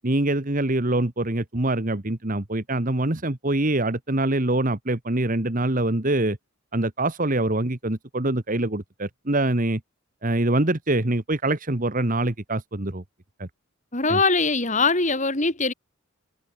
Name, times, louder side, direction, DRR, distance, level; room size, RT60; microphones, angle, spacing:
voice 1, 0.0-6.4 6.7-9.8 10.2-13.0 13.4-13.5 14.1-14.2, right 2 dB, 35° right, 1.5 m, -24 dB
voice 2, 13.9-15.7, left 3 dB, 35° left, 3.3 m, -22 dB
head